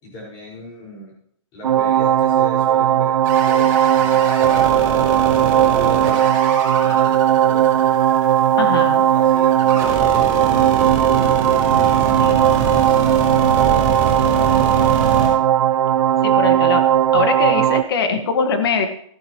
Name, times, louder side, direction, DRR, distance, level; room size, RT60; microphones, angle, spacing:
voice 1, 0.0-1.1 1.5-4.7 5.3-8.0 9.0-10.8 12.7-13.1 13.4-14.9, left 1 dB, 20° left, -3 dB, 5.5 m, -37 dB
sound 1, 1.6-17.8, right 11 dB, 75° right, 0.7 m, -17 dB
sound 2, 3.2-15.3, right 5 dB, 20° right, 4.5 m, -25 dB
voice 2, 8.6-9.1 12.2-12.5 16.2-16.9 17.1-18.9, left 5 dB, 50° left, 6 dB, 1.8 m, -22 dB
15.0 x 12.0 x 3.2 m, 0.65 s
hypercardioid pair, 170°, 17 cm